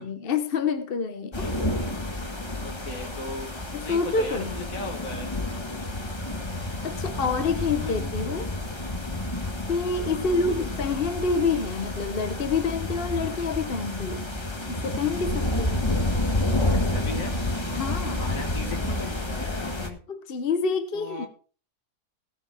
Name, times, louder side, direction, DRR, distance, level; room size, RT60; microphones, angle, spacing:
voice 1, 0.0-1.7 3.7-4.5 6.8-8.5 9.7-14.3 14.7-15.8 17.8-18.2 20.1-21.3, left 4 dB, 40° left, 9 dB, 1.0 m, -27 dB
sound 1, 1.3-19.9, left 1 dB, 20° left, 1.5 m, -30 dB
voice 2, 2.6-5.5 7.7-8.1 10.2-10.7 16.7-17.3 18.1-20.0 20.9-21.3, left 2 dB, 55° left, 5 dB, 2.5 m, -37 dB
17.5 x 7.0 x 4.9 m, 0.40 s
omnidirectional pair, 1.7 m